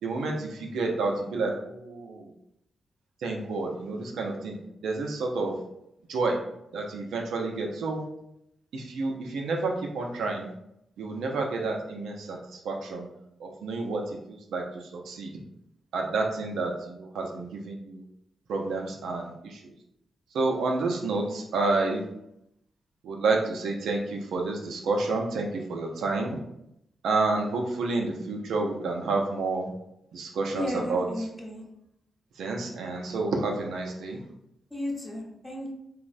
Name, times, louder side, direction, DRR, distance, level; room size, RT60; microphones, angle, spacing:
voice 1, 0.0-2.3 3.2-4.6 4.8-5.6 6.1-6.4 6.7-8.0 8.7-10.5 11.0-13.1 13.4-15.3 15.9-18.0 18.5-19.7 20.3-22.0 23.0-26.4 27.0-29.7 30.1-31.1 32.4-34.2, right 3 dB, 75° right, 1 dB, 0.4 m, -29 dB
voice 2, 30.5-31.6 34.7-35.7, left 1 dB, 20° left, -3 dB, 0.9 m, -34 dB
3.0 x 2.0 x 2.5 m, 0.81 s
hypercardioid pair, 40°, 0 cm